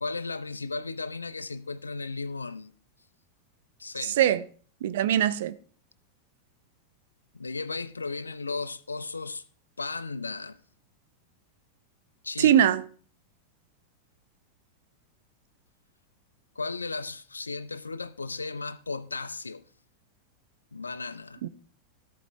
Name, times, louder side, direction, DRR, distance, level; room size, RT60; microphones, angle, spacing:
voice 1, 0.0-2.7 3.8-4.2 7.3-9.4 9.8-10.6 12.2-12.7 16.6-19.6 20.7-21.4, left 3 dB, 80° left, 0.6 m, -35 dB
voice 2, 4.8-5.6 12.4-12.8 21.4-21.5, right 10 dB, 55° right, 0.6 m, -21 dB
14.0 x 8.3 x 3.4 m
figure-of-eight pair, 90°, 0 cm